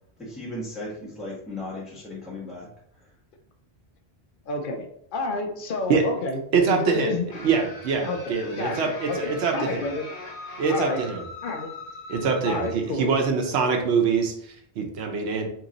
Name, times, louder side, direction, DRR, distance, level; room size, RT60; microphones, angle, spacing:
voice 1, 0.2-2.7, left 1 dB, ahead, -8 dB, 1.2 m, -36 dB
voice 2, 4.5-6.4 6.7-7.3 8.0-10.1 10.7-11.0 11.4-11.7 12.5-13.1, left 3 dB, 60° left, 3 dB, 0.7 m, -30 dB
voice 3, 6.5-9.8 10.6-11.2 12.1-15.5, right 5 dB, 80° right, 3 dB, 0.9 m, -24 dB
sound 1, 7.3-12.7, left 2 dB, 80° left, 1.1 m, -40 dB
2.9 x 2.9 x 3.8 m, 0.68 s
omnidirectional pair, 1.1 m